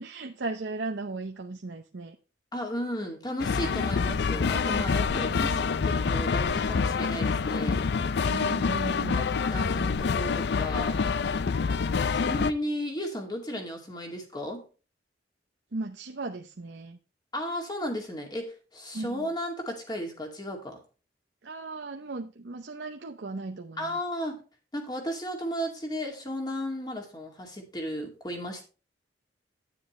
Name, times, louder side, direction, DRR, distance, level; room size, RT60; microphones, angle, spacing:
voice 1, 0.0-2.2 5.3-5.6 8.3-9.3 15.7-17.0 18.9-19.3 21.4-24.0, right 3 dB, 70° right, 0.7 m, -36 dB
voice 2, 2.5-7.8 9.2-11.0 12.1-14.7 17.3-20.8 23.8-24.4 24.7-28.6, equal, 25° left, 2.4 m, -34 dB
sound 1, 3.4-12.5, left 5 dB, 65° left, 0.4 m, -27 dB
9.9 x 9.7 x 3.2 m
head